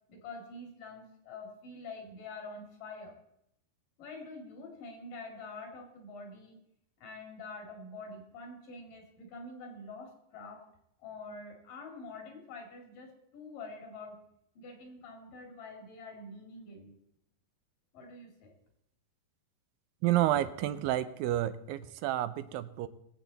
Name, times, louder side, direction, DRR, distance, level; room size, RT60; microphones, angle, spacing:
voice 1, 0.1-3.2 4.0-6.6 7.0-10.7 11.0-14.2 14.6-17.0 17.9-18.5, left 3 dB, 70° left, 3 dB, 3.9 m, -46 dB
voice 2, 20.0-22.9, right 13 dB, 85° right, 12 dB, 2.4 m, -30 dB
22.0 x 7.9 x 4.0 m, 0.78 s
omnidirectional pair, 4.0 m